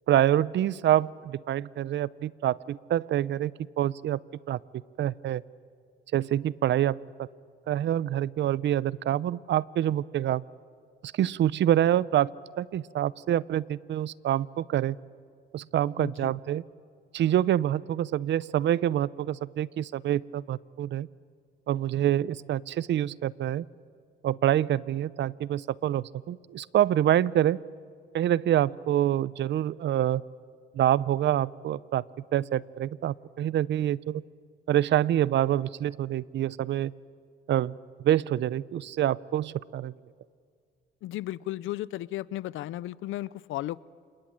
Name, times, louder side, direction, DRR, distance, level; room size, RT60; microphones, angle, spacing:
voice 1, 0.1-3.5 3.8-4.2 4.5-4.6 5.0-5.4 6.1-7.3 7.7-10.4 11.0-12.3 12.6-15.0 15.5-16.6 17.1-21.1 21.7-23.7 24.2-27.6 28.1-30.2 30.7-32.0 32.3-34.2 34.7-36.9 37.5-37.8 38.0-39.9, right 12 dB, 65° right, 0.6 m, -26 dB
voice 2, 16.0-16.3 41.0-43.8, left 15 dB, 85° left, 0.6 m, -35 dB
27.5 x 20.5 x 9.1 m
cardioid pair, 90°, 20 cm